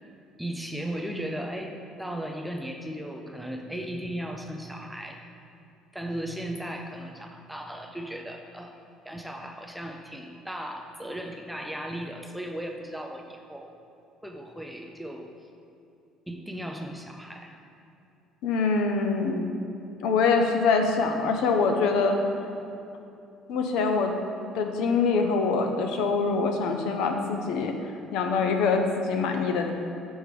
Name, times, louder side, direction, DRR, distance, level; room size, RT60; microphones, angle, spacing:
voice 1, 0.4-5.2 5.9-8.7 9.0-13.7 14.2-15.3 16.3-17.5, equal, ahead, 2 dB, 0.3 m, -36 dB
voice 2, 18.4-19.5 20.0-22.2 23.5-24.1 24.5-27.7 28.1-29.7, left 4 dB, 65° left, 4 dB, 0.6 m, -24 dB
6.4 x 4.7 x 5.1 m, 2.6 s
cardioid pair, 175°, 0 cm